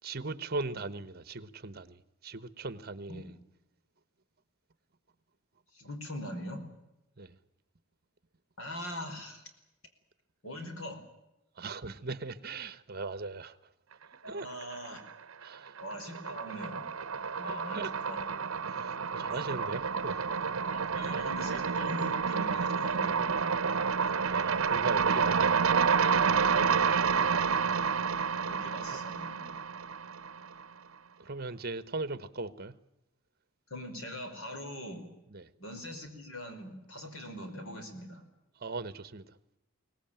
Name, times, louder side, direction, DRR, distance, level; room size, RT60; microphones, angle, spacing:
voice 1, 0.0-3.3 7.2-7.3 11.6-13.6 14.3-14.5 15.4-15.8 17.5-17.9 18.6-20.2 24.2-25.6 26.2-27.5 31.2-32.7 35.3-35.5 38.6-39.2, right 3 dB, 45° right, 14 dB, 1.2 m, -39 dB
voice 2, 5.7-6.6 8.6-9.4 10.4-11.0 14.2-15.0 15.8-16.9 17.3-18.3 19.3-19.6 20.7-23.6 26.5-26.8 28.4-29.5 33.7-35.1 35.6-38.2, equal, 75° left, 6 dB, 5.0 m, -42 dB
sound 1, 14.4-15.1 15.4-30.6, right 6 dB, 70° right, 0.8 m, -29 dB
23.5 x 18.5 x 9.1 m, 0.91 s
head